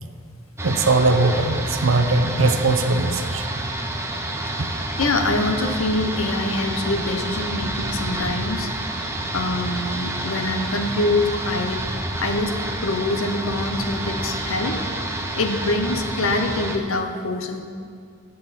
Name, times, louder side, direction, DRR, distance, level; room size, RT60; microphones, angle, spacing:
sound 1, 0.6-16.8, right 1 dB, 10° right, 0.7 m, -29 dB
voice 1, 0.6-3.4, right 3 dB, 70° right, 7 dB, 0.7 m, -20 dB
voice 2, 5.0-8.7 9.3-11.8 12.2-12.5 12.8-14.8 15.4-17.6, left 2 dB, 75° left, 6 dB, 0.8 m, -24 dB
14.0 x 6.5 x 4.1 m, 2.3 s
head